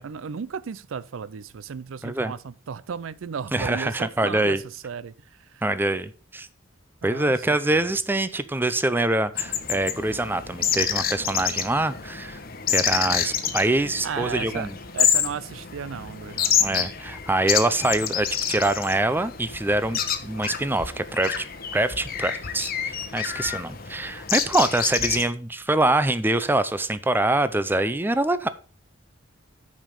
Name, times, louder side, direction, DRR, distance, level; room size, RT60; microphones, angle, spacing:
voice 1, 0.0-5.6 7.0-7.9 14.0-16.9, right 6 dB, 85° right, 0.4 m, -35 dB
voice 2, 3.5-4.6 5.6-6.5 7.0-12.4 12.7-14.7 16.6-21.5 21.7-28.5, right 2 dB, 10° right, 0.5 m, -24 dB
sound 1, 9.3-25.2, left 8 dB, 50° left, 1.1 m, -28 dB
9.0 x 5.1 x 5.3 m
head